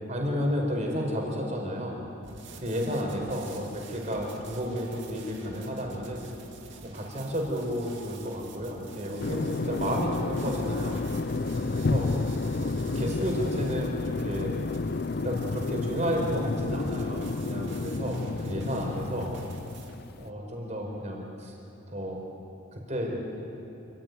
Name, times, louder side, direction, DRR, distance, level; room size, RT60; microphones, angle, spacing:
voice 1, 0.1-2.0 2.6-6.3 6.9-11.0 11.7-12.2 12.6-14.5 15.2-19.3 20.2-21.5 21.9-22.2 22.7-23.4, equal, 35° right, 0 dB, 4.9 m, -32 dB
sound 1, 2.2-19.9, right 3 dB, 65° right, 2.8 m, -48 dB
Car ride, 9.2-20.3, left 3 dB, 50° left, 0.5 m, -31 dB
28.0 x 15.5 x 9.6 m, 2.9 s
head